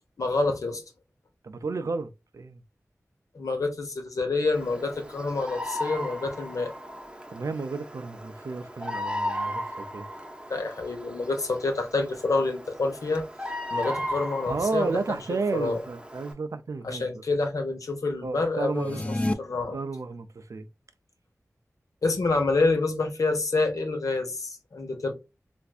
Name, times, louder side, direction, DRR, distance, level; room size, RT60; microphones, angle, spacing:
voice 1, 0.2-0.8 3.3-6.7 10.5-13.3 13.7-14.9 15.3-15.8 16.8-19.8 22.0-25.1, left 3 dB, 80° left, 0.8 m, -27 dB
voice 2, 1.4-2.6 7.3-10.0 14.5-17.0 18.2-19.3 19.7-20.7, right 4 dB, 70° right, 0.5 m, -32 dB
Bird vocalization bird call bird song, 4.5-16.3, left 1 dB, 15° right, 0.7 m, -36 dB
sound 1, 18.7-19.3, left 1 dB, 20° left, 0.5 m, -28 dB
3.4 x 2.5 x 2.4 m
cardioid pair, 45°, 6 cm